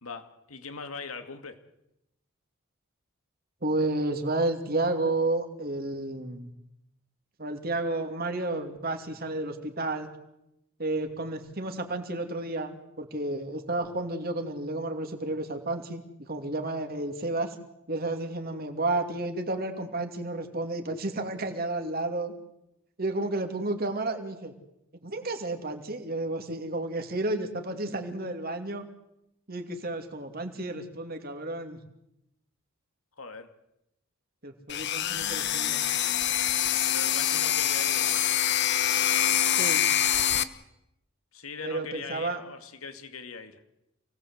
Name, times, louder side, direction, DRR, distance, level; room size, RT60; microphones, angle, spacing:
voice 1, 0.0-1.6 33.2-33.5 36.9-38.2 41.3-43.6, left 4 dB, 85° left, 8 dB, 2.5 m, -41 dB
voice 2, 3.6-6.5 7.4-10.1 10.8-17.5 17.9-22.3 23.0-24.5 25.0-28.9 29.5-31.8 34.4-35.9 39.5-39.9 41.6-42.4, right 2 dB, 45° right, 5 dB, 2.8 m, -31 dB
sound 1, 34.7-40.4, left 11 dB, 55° left, 1.1 m, -25 dB
28.5 x 18.5 x 8.0 m, 0.85 s
head